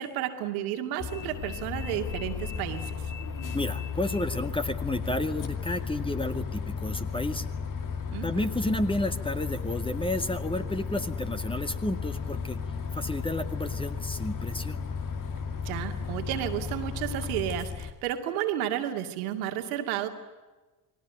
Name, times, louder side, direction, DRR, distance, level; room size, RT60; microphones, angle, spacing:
voice 1, 0.0-3.0 8.1-8.5 15.6-20.1, right 11 dB, 65° right, 5 dB, 2.4 m, -32 dB
Bus, 1.0-17.9, left 6 dB, 45° left, 2.6 m, -34 dB
voice 2, 3.5-7.5 8.2-12.6 12.9-14.8, left 1 dB, 10° left, 8 dB, 2.0 m, -31 dB
30.0 x 21.0 x 9.3 m, 1.2 s
figure-of-eight pair, 50°, 46 cm